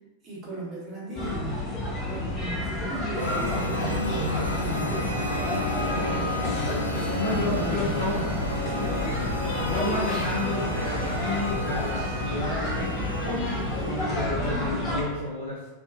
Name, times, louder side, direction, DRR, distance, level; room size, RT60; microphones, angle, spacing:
voice 1, 0.2-1.6 2.1-5.2 5.8-9.1, right 1 dB, 30° right, -6 dB, 1.0 m, -37 dB
sound 1, 1.2-15.0, left 2 dB, 25° left, 0.7 m, -30 dB
sound 2, 2.4-5.1, equal, 10° left, 1.2 m, -44 dB
sound 3, 3.2-14.3, left 1 dB, 90° right, 0.4 m, -31 dB
voice 2, 7.2-8.4 9.1-15.7, left 1 dB, 80° left, -9 dB, 0.5 m, -31 dB
2.4 x 2.3 x 2.4 m, 1.2 s
figure-of-eight pair, 90°, 0 cm